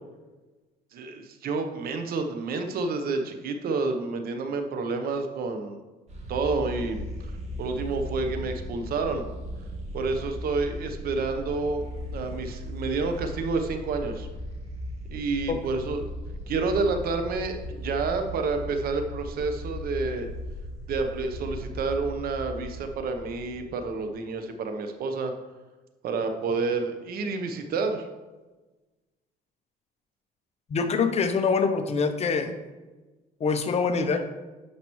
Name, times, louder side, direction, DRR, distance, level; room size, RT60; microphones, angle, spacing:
voice 1, 0.9-5.8 6.3-7.0 7.6-9.3 9.9-11.8 12.1-14.3 15.1-16.1 16.5-20.3 20.9-25.3 26.0-28.1, right 4 dB, 65° right, 6 dB, 0.9 m, -29 dB
sound 1, 6.1-24.1, equal, 40° right, 1.8 m, -37 dB
voice 2, 30.7-32.5 33.4-34.2, left 5 dB, 40° left, 8 dB, 0.8 m, -24 dB
9.5 x 5.8 x 3.1 m, 1.2 s
cardioid pair, 110°, 17 cm